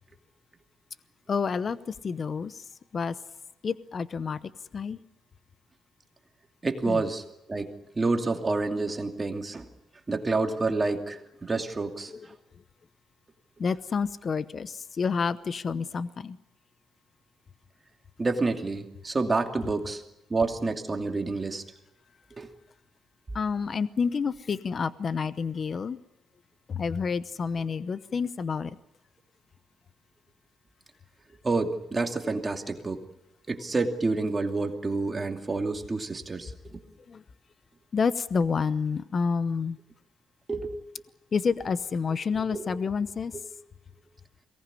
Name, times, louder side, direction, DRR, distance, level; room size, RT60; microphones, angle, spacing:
voice 1, 1.3-1.8 2.0-2.6 2.9-3.1 3.6-4.4 4.7-5.0 6.9-7.0 12.1-12.2 13.6-16.4 23.3-26.0 26.7-28.7 37.1-37.2 37.9-39.8 41.3-43.3, left 5 dB, 45° left, 14 dB, 0.8 m, -29 dB
voice 2, 6.6-9.7 10.1-12.3 18.2-20.0 20.3-21.6 22.4-22.5 31.4-33.0 33.5-36.8 40.5-40.7 42.3-42.7, right 3 dB, 25° right, 3 dB, 2.6 m, -29 dB
23.0 x 18.5 x 9.8 m, 0.90 s
cardioid pair, 90°, 0 cm